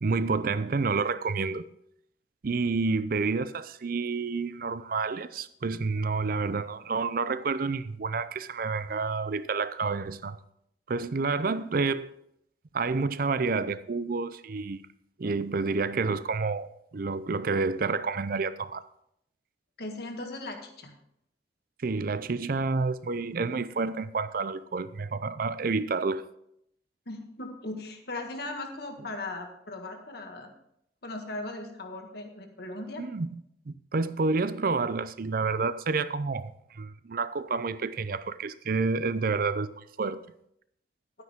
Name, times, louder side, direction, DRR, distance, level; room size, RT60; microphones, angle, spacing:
voice 1, 0.0-1.7 2.4-10.4 10.9-12.1 12.7-14.8 15.2-18.8 21.8-26.2 33.0-33.4 33.7-40.2, right 4 dB, 50° right, 0.5 m, -29 dB
voice 2, 19.8-20.9 27.1-30.5 31.0-33.0, left 2 dB, 60° left, 1.7 m, -38 dB
12.0 x 9.5 x 3.6 m
head